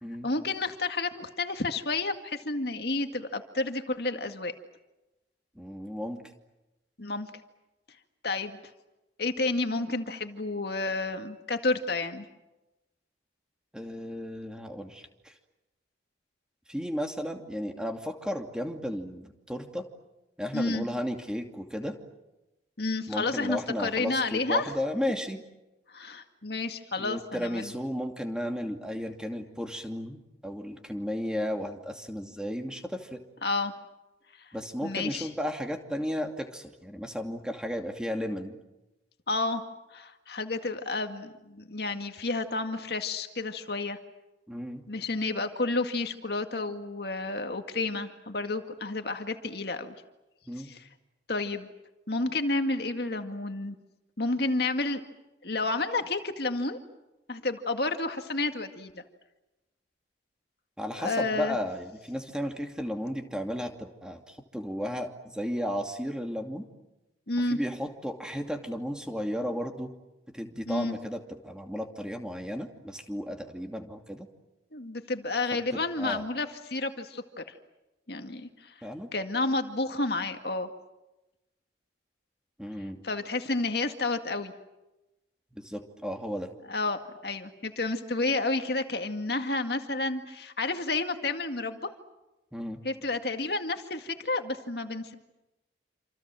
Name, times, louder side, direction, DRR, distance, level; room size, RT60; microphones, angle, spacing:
voice 1, 0.2-4.5 7.0-7.3 8.2-8.6 9.2-12.3 20.5-20.9 22.8-24.7 25.9-27.7 33.4-33.7 34.8-35.3 39.3-39.6 39.9-44.0 44.9-49.9 50.6-50.9 51.3-51.7 52.1-53.8 54.2-55.0 55.4-56.8 57.3-59.0 60.9-61.6 67.3-67.6 70.7-70.9 74.7-77.2 78.1-78.7 79.1-80.7 83.0-84.5 86.7-91.8 92.8-95.1, left 3 dB, 55° left, 6 dB, 2.1 m, -30 dB
voice 2, 5.6-6.2 13.7-15.3 16.7-19.9 20.4-22.0 23.1-25.4 27.0-33.2 34.5-38.6 44.5-44.8 50.5-50.7 60.8-66.6 67.5-69.9 70.3-74.3 75.7-76.2 78.8-79.1 82.6-83.0 85.5-86.5 92.5-92.8, equal, 5° right, 4 dB, 2.6 m, -34 dB
28.0 x 27.5 x 7.6 m, 1.0 s
head